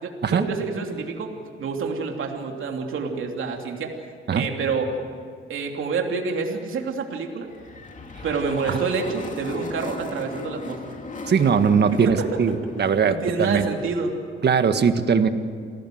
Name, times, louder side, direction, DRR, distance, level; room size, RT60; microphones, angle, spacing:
voice 1, 0.0-1.3 1.6-3.9 4.3-4.9 5.5-7.5 8.2-11.0 12.0-12.3 12.8-14.2, right 5 dB, 75° right, 2 dB, 3.1 m, -28 dB
sound 1, 7.5-13.9, left 3 dB, 40° left, 2.7 m, -38 dB
voice 2, 11.3-13.7 14.4-15.3, right 6 dB, 55° right, 9 dB, 1.6 m, -20 dB
29.0 x 18.5 x 7.9 m, 2.3 s
cardioid pair, 110°, 21 cm